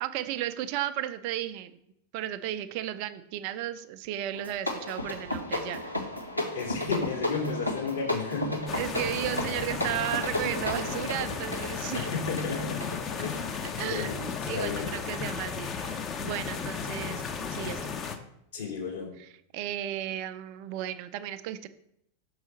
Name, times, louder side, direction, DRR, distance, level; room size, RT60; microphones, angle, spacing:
voice 1, 0.0-1.8 2.1-5.9 8.7-12.1 13.8-17.9 19.2-21.7, right 12 dB, 45° right, 12 dB, 0.5 m, -34 dB
sound 1, 4.3-14.7, left 1 dB, 90° left, 1.0 m, -34 dB
voice 2, 6.5-8.6 12.0-12.8 13.2-13.5 13.8-14.1 14.5-14.9 18.5-19.1, left 5 dB, 65° left, -1 dB, 2.2 m, -32 dB
sound 2, 8.7-18.2, left 6 dB, 25° left, 0.7 m, -35 dB
6.3 x 4.8 x 5.1 m, 0.76 s
figure-of-eight pair, 90°, 0 cm